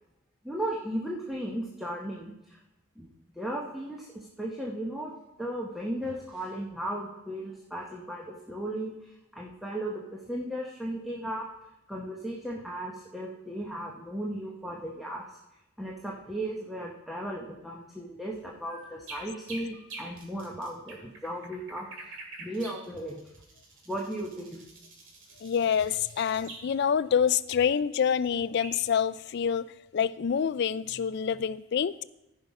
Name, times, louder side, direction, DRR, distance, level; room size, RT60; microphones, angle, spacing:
voice 1, 0.4-2.6 3.0-3.1 3.4-11.4 11.9-15.2 15.8-21.9 22.4-23.2 23.9-24.6, right 1 dB, ahead, -3 dB, 0.9 m, -36 dB
sound 1, 18.6-26.7 28.2-28.3 28.6-28.7, right 2 dB, 60° right, 2.3 m, -46 dB
voice 2, 25.4-32.0, left 7 dB, 50° left, 17 dB, 0.3 m, -27 dB
15.0 x 5.5 x 4.8 m, 0.92 s
head